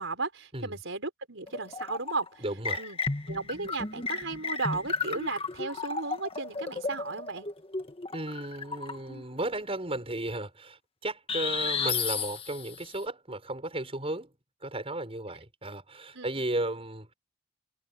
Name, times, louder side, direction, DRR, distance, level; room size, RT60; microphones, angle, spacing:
voice 1, 0.0-2.4 2.8-3.0 3.3-7.5 16.1-16.4, right 3 dB, 70° right, 5.1 m, -35 dB
sound 1, 1.5-2.3 2.6-9.2 11.3-12.9, left 4 dB, 30° left, 1.6 m, -33 dB
voice 2, 2.4-2.8 8.1-14.3 14.6-17.1, right 1 dB, 30° right, 6.2 m, -34 dB
head